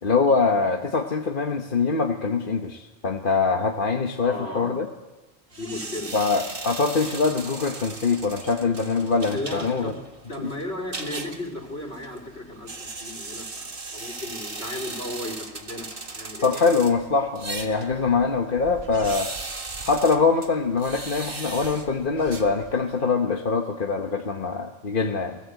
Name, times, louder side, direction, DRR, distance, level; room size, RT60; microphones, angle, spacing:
voice 1, 0.0-4.9 6.1-9.9 10.4-10.5 16.4-19.3 19.8-25.4, left 4 dB, 55° left, 4 dB, 1.4 m, -23 dB
voice 2, 4.2-4.8 5.5-6.1 9.3-10.0 10.3-16.7, left 1 dB, 75° left, 5 dB, 4.0 m, -35 dB
sound 1, 5.5-23.0, right 3 dB, 55° right, 2.0 m, -38 dB
29.0 x 19.0 x 8.3 m, 1.1 s
omnidirectional pair, 1.1 m